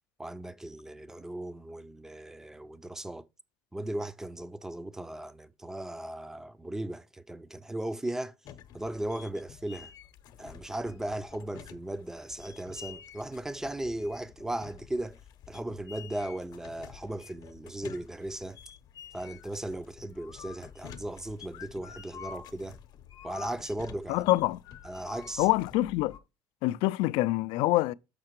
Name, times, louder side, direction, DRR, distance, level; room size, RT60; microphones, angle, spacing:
voice 1, 0.2-3.2 3.7-8.3 8.7-9.9 10.4-15.2 15.5-18.6 19.1-22.8 23.2-24.2 24.8-25.5, right 1 dB, 5° right, 0.4 m, -37 dB
sound 1, 8.4-26.2, left 9 dB, 50° left, 0.7 m, -49 dB
voice 2, 24.1-24.6 25.4-26.2 26.6-27.9, left 18 dB, 80° left, 0.4 m, -25 dB
6.6 x 5.8 x 4.5 m
cardioid pair, 160°, 9 cm